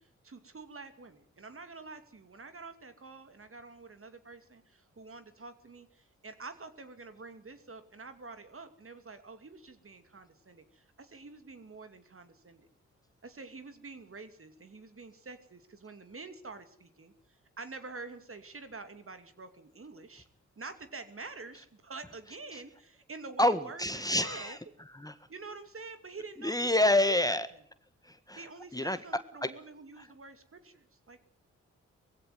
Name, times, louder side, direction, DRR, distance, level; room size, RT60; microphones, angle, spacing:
voice 1, 0.0-12.7 13.2-20.3 20.6-24.6 25.3-27.4 28.3-31.2, right 3 dB, 45° right, 9 dB, 2.7 m, -47 dB
voice 2, 23.4-24.6 24.9-25.1 26.4-27.5 28.0-28.4 28.7-29.0 29.4-29.5 30.0-30.1, left 1 dB, 10° left, 11 dB, 1.7 m, -28 dB
20.0 x 16.0 x 9.4 m, 0.64 s
supercardioid pair, 45°, 30 cm